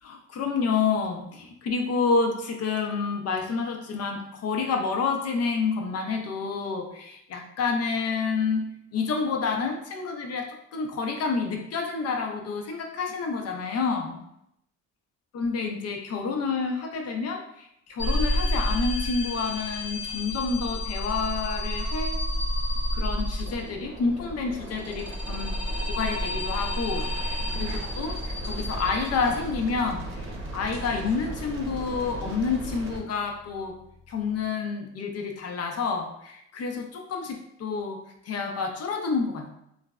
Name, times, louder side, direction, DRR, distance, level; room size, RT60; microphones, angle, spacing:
voice 1, 0.0-14.2 15.3-22.2 22.9-25.6 25.9-30.3 30.5-33.8 34.1-39.5, left 4 dB, 55° left, 3 dB, 0.5 m, -29 dB
sound 1, 18.0-23.8 24.6-29.6, left 1 dB, 5° right, 0.6 m, -30 dB
sound 2, 23.4-33.0, right 1 dB, 45° right, 0.7 m, -38 dB
sound 3, 26.9-32.2, right 2 dB, 80° right, 0.9 m, -46 dB
3.1 x 2.0 x 2.3 m, 0.77 s
cardioid pair, 90°, 30 cm